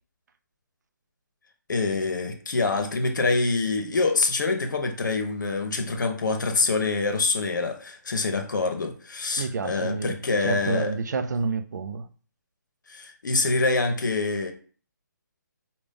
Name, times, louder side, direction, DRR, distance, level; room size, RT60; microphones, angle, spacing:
voice 1, 1.7-10.9 12.9-14.5, left 3 dB, 70° left, 1.0 m, -25 dB
voice 2, 9.4-12.1, right 4 dB, 65° right, 0.5 m, -29 dB
5.2 x 2.4 x 3.4 m
hypercardioid pair, 150°, 10 cm